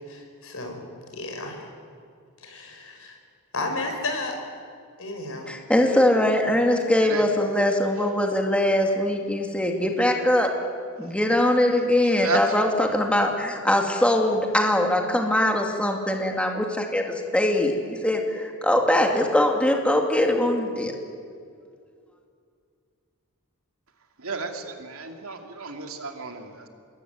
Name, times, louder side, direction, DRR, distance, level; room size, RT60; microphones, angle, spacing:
voice 1, 0.1-0.8 1.1-1.7 2.4-3.2 3.5-4.4 5.0-5.5, left 2 dB, 65° left, 3 dB, 5.6 m, -32 dB
voice 2, 5.5-10.5 11.0-20.9, left 1 dB, 5° left, 2 dB, 2.4 m, -22 dB
voice 3, 24.2-26.7, right 4 dB, 70° right, 4 dB, 2.8 m, -32 dB
27.0 x 21.0 x 9.5 m, 2.3 s
head